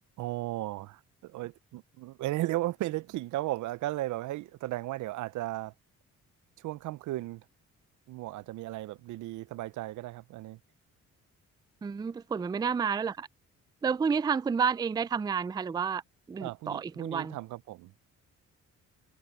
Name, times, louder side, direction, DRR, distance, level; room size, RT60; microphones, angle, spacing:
voice 1, 0.2-5.7 6.6-7.5 8.1-10.6 16.4-17.9, right 16 dB, 75° right, 0.6 m, -35 dB
voice 2, 11.8-13.3 13.8-16.0 16.3-17.4, right 6 dB, 15° right, 0.3 m, -30 dB
cardioid pair, 90°, 30 cm